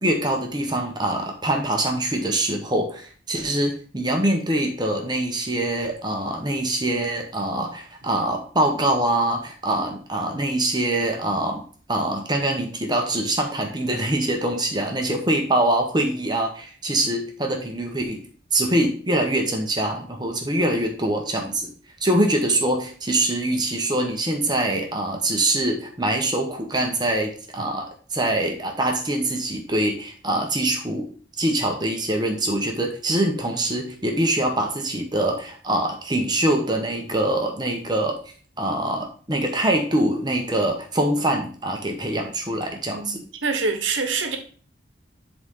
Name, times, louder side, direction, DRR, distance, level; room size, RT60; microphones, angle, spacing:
voice 1, 0.0-11.6 11.9-18.2 18.5-21.7 22.0-31.1 31.4-38.2 38.6-43.2, right 1 dB, 20° right, 1.3 m, -24 dB
voice 2, 42.9-44.4, right 4 dB, 90° right, 1.3 m, -26 dB
10.5 x 4.1 x 3.8 m
head